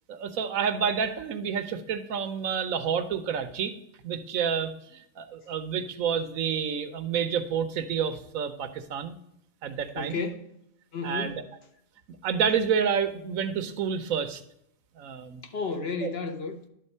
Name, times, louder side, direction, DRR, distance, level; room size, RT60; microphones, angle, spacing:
voice 1, 0.1-3.7 4.0-9.2 9.6-10.2 11.0-11.4 12.2-14.4 15.0-15.4 16.0-16.1, right 7 dB, 85° right, 1.2 m, -29 dB
voice 2, 9.9-10.5 10.9-11.4 15.4-16.6, left 4 dB, 55° left, 1.1 m, -32 dB
11.0 x 3.9 x 5.4 m
omnidirectional pair, 1.4 m